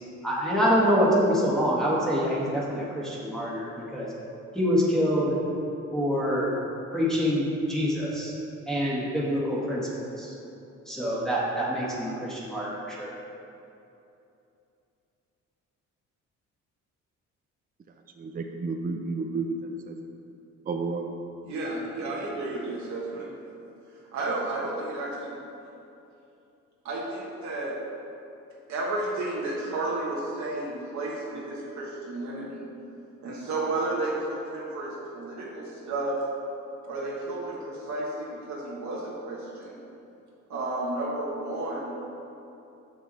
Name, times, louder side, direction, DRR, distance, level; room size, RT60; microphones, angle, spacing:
voice 1, 0.2-4.1 4.5-5.4 5.9-6.5 6.9-8.3 8.7-10.3 10.9-13.1, equal, ahead, -7 dB, 1.7 m, -26 dB
voice 2, 18.1-20.0 20.7-21.1, right 3 dB, 30° right, 4 dB, 0.5 m, -31 dB
voice 3, 21.4-23.3 24.1-25.4 26.8-27.7 28.7-32.6 33.2-36.2 36.8-39.7 40.5-41.9, right 2 dB, 70° right, -5 dB, 1.4 m, -32 dB
6.2 x 6.0 x 4.1 m, 2.8 s
cardioid pair, 90°, 30 cm